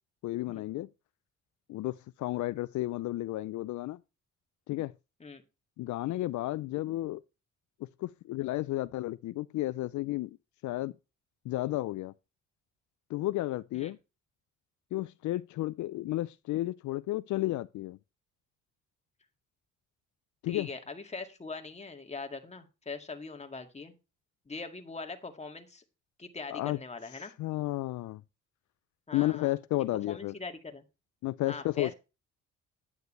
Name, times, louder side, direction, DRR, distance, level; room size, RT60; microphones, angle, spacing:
voice 1, 0.2-0.9 1.7-4.0 4.7-4.9 5.8-7.2 8.0-10.4 10.6-10.9 11.5-12.1 13.1-14.0 14.9-18.0 20.4-20.7 26.5-26.8 27.2-28.2 29.1-30.3 31.2-31.9, left 16 dB, 75° left, 0.5 m, -32 dB
voice 2, 20.5-23.9 24.5-25.8 26.2-27.3 29.1-29.5 30.1-30.8 31.5-31.9, left 4 dB, 20° left, 2.0 m, -42 dB
9.5 x 9.3 x 3.2 m
cardioid pair, 90°, 30 cm